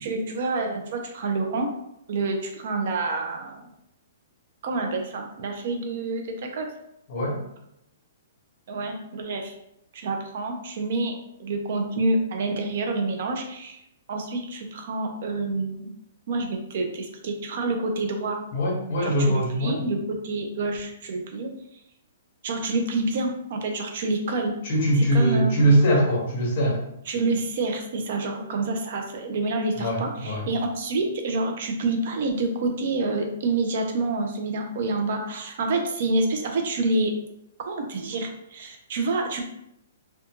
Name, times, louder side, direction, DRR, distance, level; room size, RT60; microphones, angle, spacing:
voice 1, 0.0-1.7 2.1-3.7 4.6-6.7 8.7-9.5 9.9-13.8 14.1-15.9 16.3-18.4 19.0-21.5 22.4-24.5 25.0-25.7 27.1-37.1 37.7-39.4, right 2 dB, 45° right, 3 dB, 0.4 m, -28 dB
voice 2, 7.1-7.4 18.5-19.8 24.6-26.8 29.8-30.5, right 1 dB, 35° left, -3 dB, 1.0 m, -22 dB
2.5 x 2.2 x 2.8 m, 0.79 s
hypercardioid pair, 175°, 0 cm